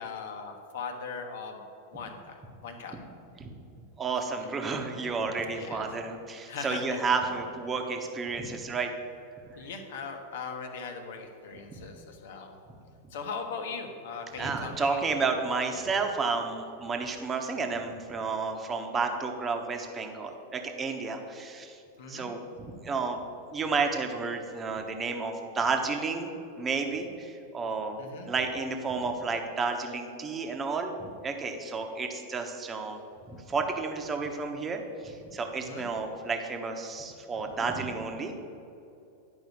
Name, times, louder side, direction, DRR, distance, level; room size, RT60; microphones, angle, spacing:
voice 1, 0.0-1.6 1.9-2.4 2.6-3.0 5.5-5.8 6.5-6.8 9.6-12.5 13.1-15.0 22.0-22.3 28.0-28.3 35.6-35.9, left 5 dB, 55° left, 5 dB, 1.3 m, -39 dB
voice 2, 4.0-8.9 9.6-9.7 11.7-11.8 14.4-21.8 22.1-23.2 23.5-26.3 26.6-28.0 28.2-33.0 33.3-38.5, right 4 dB, 20° right, 4 dB, 1.1 m, -31 dB
11.0 x 5.4 x 6.6 m, 2.7 s
figure-of-eight pair, 90°, 0 cm